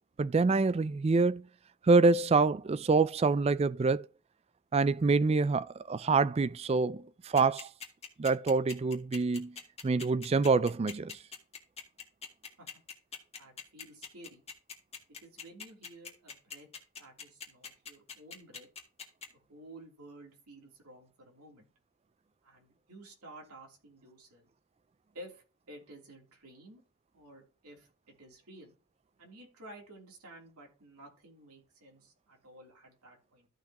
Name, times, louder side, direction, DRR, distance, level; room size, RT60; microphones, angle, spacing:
voice 1, 0.2-1.4 1.9-4.1 4.7-7.7 8.2-9.6 9.8-11.2, right 4 dB, 25° right, 0.3 m, -26 dB
sound 1, 7.4-19.3, left 6 dB, 30° left, 2.0 m, -43 dB
voice 2, 13.4-14.4 15.1-16.7 17.0-18.7 19.5-21.7 22.4-24.5 25.1-26.8 27.1-28.7 29.2-33.5, right 1 dB, 85° right, 3.2 m, -53 dB
14.0 x 5.8 x 2.9 m
head